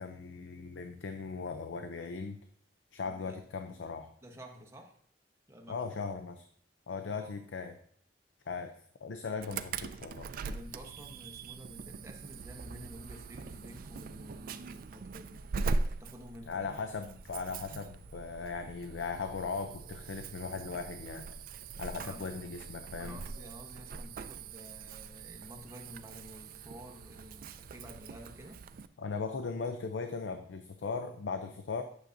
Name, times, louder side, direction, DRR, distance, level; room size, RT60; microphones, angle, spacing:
voice 1, 0.0-2.4 2.9-4.1 5.7-6.4 6.9-7.8 8.5-10.3 16.5-21.3 21.8-23.2 29.0-31.8, left 4 dB, 85° left, 7 dB, 0.5 m, -38 dB
voice 2, 3.0-3.4 4.2-5.0 5.5-5.8 7.1-7.3 10.4-15.5 16.0-16.7 21.9-22.2 23.0-28.6, equal, 15° right, 2 dB, 1.0 m, -50 dB
Insect / Alarm, 9.4-28.9, right 3 dB, 50° right, 0.4 m, -41 dB
9.1 x 6.3 x 2.6 m, 0.63 s
head